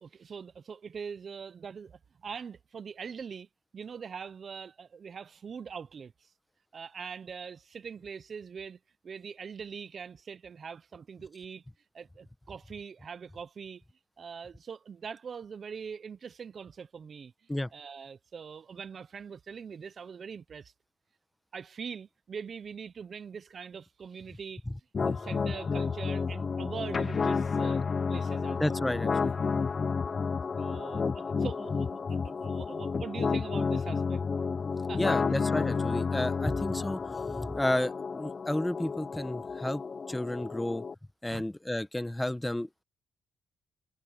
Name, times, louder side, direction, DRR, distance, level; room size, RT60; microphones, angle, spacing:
voice 1, 0.0-3.5 3.7-6.3 6.7-8.8 9.0-11.6 11.9-13.8 14.2-17.3 17.7-20.7 21.5-24.6 25.0-27.8 28.1-28.8 30.6-34.2 34.9-35.2 41.3-41.5, right 6 dB, 45° right, 0.8 m, -42 dB
sound 1, 24.9-40.9, left 5 dB, 35° left, 0.5 m, -31 dB
voice 2, 28.6-29.3 35.0-39.8 40.1-40.8 41.2-42.8, left 1 dB, 10° left, 1.0 m, -32 dB
cardioid pair, 90°, 0 cm